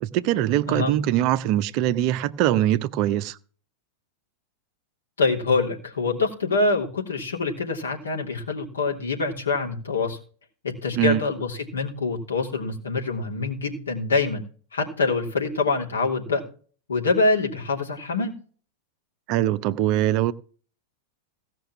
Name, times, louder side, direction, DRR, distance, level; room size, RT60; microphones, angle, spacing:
voice 1, 0.0-3.4 11.0-11.2 19.3-20.3, right 13 dB, 45° right, 0.8 m, -22 dB
voice 2, 5.2-10.2 10.6-14.4 14.7-16.4 16.9-18.3, left 3 dB, 80° left, 3.1 m, -25 dB
16.5 x 6.1 x 5.9 m
figure-of-eight pair, 95°, 0 cm